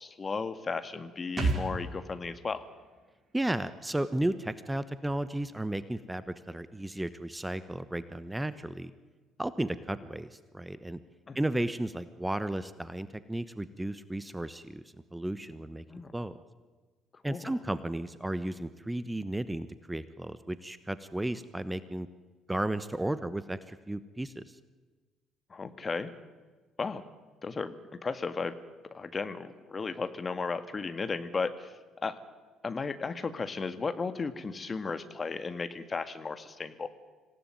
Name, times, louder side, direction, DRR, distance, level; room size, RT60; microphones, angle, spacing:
voice 1, 0.0-2.7 11.3-11.4 15.9-16.1 17.3-17.5 25.5-26.1 26.8-27.0 27.4-27.7 28.0-28.6 28.9-32.2 32.6-36.9, left 4 dB, 30° left, 10 dB, 1.8 m, -35 dB
sound 1, 1.4-4.9 5.1-5.2, right 3 dB, 30° right, 5.4 m, -36 dB
voice 2, 3.3-8.9 9.4-11.0 11.3-14.8 15.1-15.8 16.1-16.3 17.2-22.1 22.5-24.4, right 1 dB, 10° right, 14 dB, 1.1 m, -34 dB
26.0 x 17.0 x 9.2 m, 1.4 s
figure-of-eight pair, 50°, 0 cm